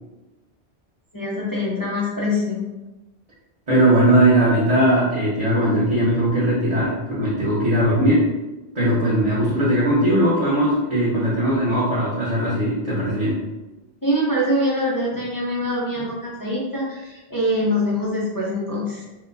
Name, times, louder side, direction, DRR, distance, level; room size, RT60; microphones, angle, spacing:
voice 1, 1.1-2.7 14.0-19.0, left 1 dB, 30° left, -6 dB, 0.4 m, -24 dB
voice 2, 3.7-8.3 8.7-13.4, right 1 dB, 40° right, -10 dB, 1.0 m, -19 dB
4.5 x 2.1 x 2.6 m, 1.1 s
omnidirectional pair, 1.1 m